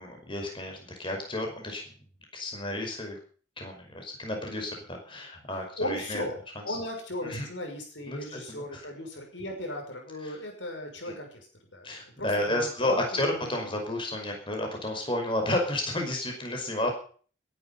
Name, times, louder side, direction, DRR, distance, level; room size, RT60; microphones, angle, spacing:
voice 1, 0.0-1.8 2.3-3.2 3.6-6.2 6.7-6.8 7.2-7.5 8.1-8.9 10.2-10.4 11.1-11.2 11.8-16.9, left 1 dB, 25° left, 3 dB, 5.4 m, -32 dB
voice 2, 5.8-6.4 6.6-11.5 11.7-11.9 12.2-13.5, left 1 dB, 80° left, 3 dB, 6.3 m, -36 dB
21.0 x 11.0 x 5.7 m, 0.43 s
head